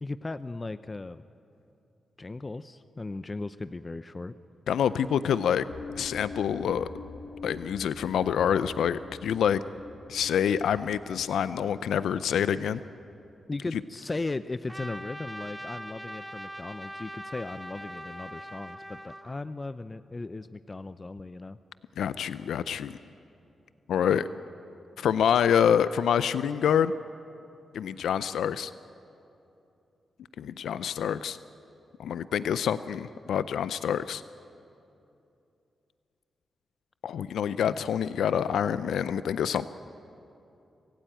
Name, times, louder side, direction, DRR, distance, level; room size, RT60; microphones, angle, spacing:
voice 1, 0.0-1.2 2.2-4.3 13.5-21.6, left 3 dB, 30° left, 13 dB, 0.6 m, -37 dB
voice 2, 4.7-5.7 5.9-6.9 7.4-9.6 10.1-12.8 13.7-13.8 22.0-23.0 23.9-24.3 25.0-26.9 27.7-28.7 30.4-31.4 32.0-34.2 37.0-39.7, left 8 dB, 85° left, 15 dB, 0.5 m, -26 dB
sound 1, 5.7-13.2, left 4 dB, 65° left, 3.2 m, -44 dB
Trumpet, 14.7-19.4, equal, ahead, 1.5 m, -41 dB
25.5 x 15.5 x 9.1 m, 2.8 s
cardioid pair, 55°, 0 cm